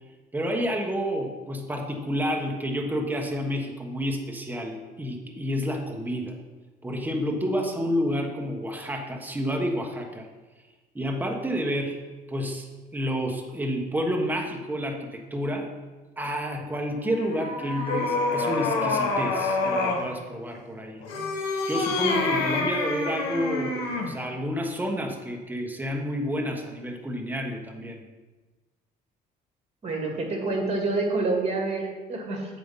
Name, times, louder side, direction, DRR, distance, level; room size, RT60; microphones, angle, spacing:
voice 1, 0.3-6.3 6.8-10.3 10.9-12.0 12.3-12.7 12.9-15.7 16.2-21.0 21.7-28.0, equal, 10° right, 1 dB, 1.3 m, -29 dB
sound 1, 17.1-20.1 21.0-24.2, left 2 dB, 80° left, 1.5 m, -27 dB
voice 2, 29.8-32.6, right 3 dB, 40° right, 2 dB, 2.1 m, -27 dB
7.6 x 5.2 x 5.6 m, 1.2 s
cardioid pair, 110°, 17 cm